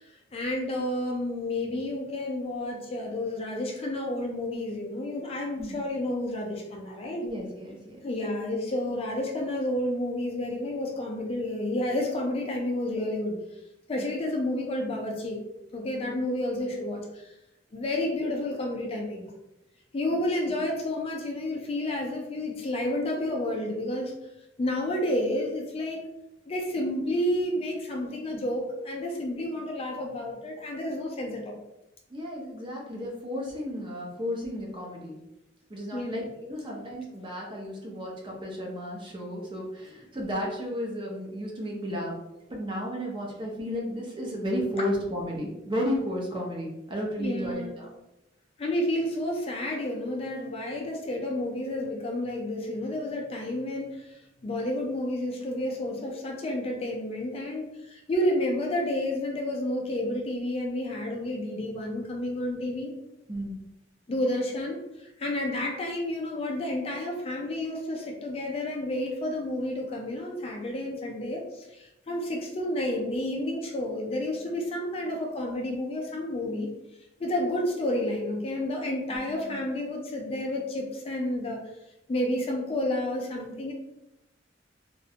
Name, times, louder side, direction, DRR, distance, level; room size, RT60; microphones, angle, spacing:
voice 1, 0.0-7.2 8.0-13.4 13.9-15.4 15.7-17.3 17.7-19.3 19.9-24.1 24.6-26.1 26.5-31.6 35.9-36.2 47.2-47.8 48.6-54.1 54.4-62.9 64.1-76.7 77.2-81.6 82.1-83.7, left 1 dB, 35° left, 0 dB, 0.4 m, -30 dB
voice 2, 7.2-8.0 14.0-14.1 20.5-20.6 32.1-35.2 35.7-42.1 42.5-47.9 63.3-63.6 79.1-79.6, equal, 25° right, -2 dB, 0.6 m, -33 dB
2.4 x 2.1 x 2.7 m, 0.92 s
head